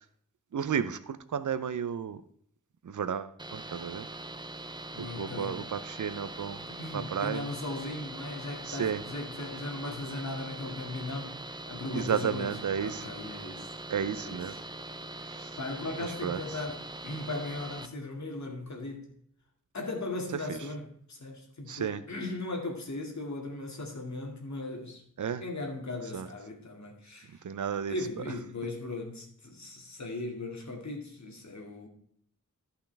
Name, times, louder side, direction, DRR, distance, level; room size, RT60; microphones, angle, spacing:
voice 1, 0.5-2.2 2.8-4.1 5.0-6.6 6.9-7.5 8.7-9.0 11.9-13.0 13.9-14.5 15.4-15.5 16.2-16.4 20.5-20.6 21.7-22.0 25.2-25.4 26.1-26.3 27.4-27.9, right 7 dB, 70° right, 0.6 m, -32 dB
sound 1, 3.4-17.9, right 2 dB, 15° right, 0.6 m, -42 dB
voice 2, 4.9-5.6 6.7-11.4 11.7-13.7 14.1-14.6 15.6-19.1 19.7-25.0 25.4-27.4 27.9-31.9, left 2 dB, 60° left, 2.3 m, -38 dB
14.0 x 5.7 x 3.4 m
wide cardioid pair, 105°, 32 cm